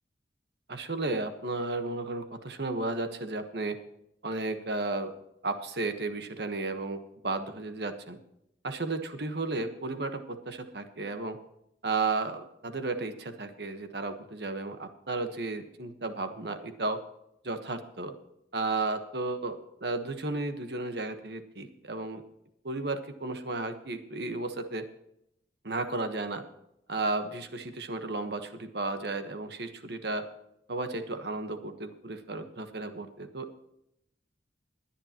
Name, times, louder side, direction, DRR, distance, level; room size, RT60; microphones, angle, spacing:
voice 1, 0.7-3.8 4.2-5.1 5.4-8.2 8.6-11.4 11.8-17.0 17.4-18.1 18.5-22.2 22.6-24.9 25.6-26.4 26.9-30.2 30.7-33.5, right 3 dB, 60° right, 8 dB, 1.3 m, -33 dB
21.0 x 10.0 x 3.0 m, 0.80 s
head